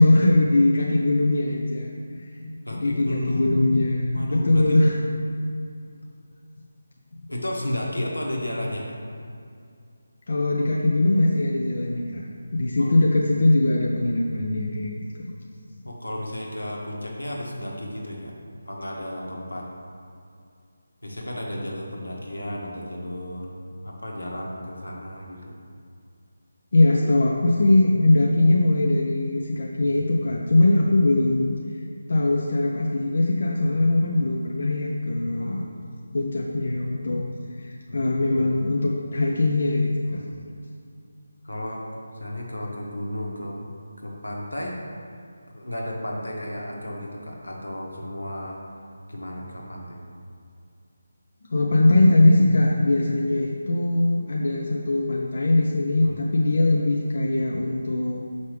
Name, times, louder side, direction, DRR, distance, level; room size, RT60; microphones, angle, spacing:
voice 1, 0.0-1.9 2.2-4.9 10.3-12.2 12.5-15.0 26.7-31.6 32.1-35.7 36.1-37.2 37.5-40.2 51.5-58.2, left 2 dB, 55° left, -1 dB, 0.5 m, -21 dB
voice 2, 2.6-3.5 4.1-4.8 7.3-9.0 12.8-13.0 15.8-18.3 18.6-19.7 21.0-23.5 23.8-25.5 27.9-28.1 33.6-33.8 35.4-35.6 37.9-38.0 38.4-38.5 40.1-40.4 41.4-41.8 42.1-43.6 44.0-44.8 45.5-48.6 49.1-50.1 56.0-56.1, left 1 dB, 85° left, -1 dB, 1.4 m, -33 dB
6.6 x 5.2 x 3.4 m, 2.4 s
figure-of-eight pair, 155°, 0 cm